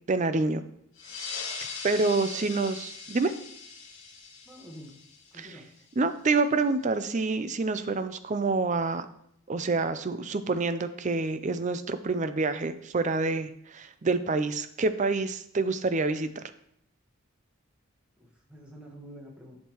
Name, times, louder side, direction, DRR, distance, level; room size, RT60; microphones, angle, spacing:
voice 1, 0.1-0.6 1.8-3.3 5.4-5.6 6.0-9.1 9.5-16.4, right 3 dB, 35° right, 11 dB, 0.4 m, -27 dB
sound 1, 1.0-6.0, left 5 dB, 60° left, 1.4 m, -41 dB
voice 2, 2.2-2.8 4.4-4.9 5.3-5.6 18.5-19.6, equal, 5° right, -2 dB, 1.3 m, -47 dB
11.0 x 6.5 x 3.0 m, 0.72 s
head